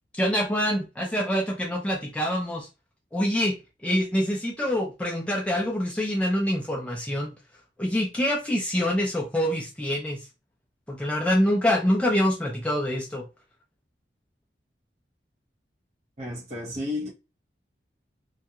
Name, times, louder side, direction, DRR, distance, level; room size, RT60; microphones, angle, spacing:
voice 1, 0.2-2.7 3.1-3.6 3.8-7.3 7.8-10.3 10.9-13.3, equal, 5° left, 0.3 m, -25 dB
voice 2, 16.2-17.1, left 2 dB, 40° right, 0.8 m, -32 dB
2.3 x 2.1 x 2.7 m
head